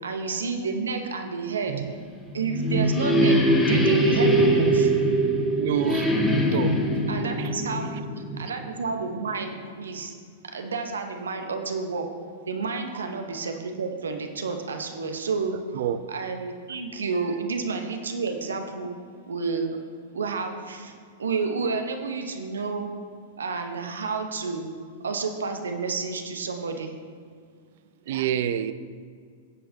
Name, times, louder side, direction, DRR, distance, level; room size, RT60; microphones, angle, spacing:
voice 1, 0.0-1.8 2.3-4.9 7.1-8.0 8.3-10.1 10.5-12.1 12.5-19.0 19.3-19.8 20.1-20.9 21.2-22.9 23.4-24.7 25.0-27.0, right 4 dB, 75° right, 5 dB, 1.0 m, -30 dB
sound 1, 2.1-8.8, right 1 dB, 10° left, 1.7 m, -22 dB
voice 2, 5.6-6.2 6.5-6.8 7.4-7.5 8.3-8.5 15.7-16.0 28.1-28.7, right 10 dB, 55° right, 13 dB, 0.5 m, -27 dB
16.0 x 7.8 x 2.8 m, 2.1 s
figure-of-eight pair, 100°, 0 cm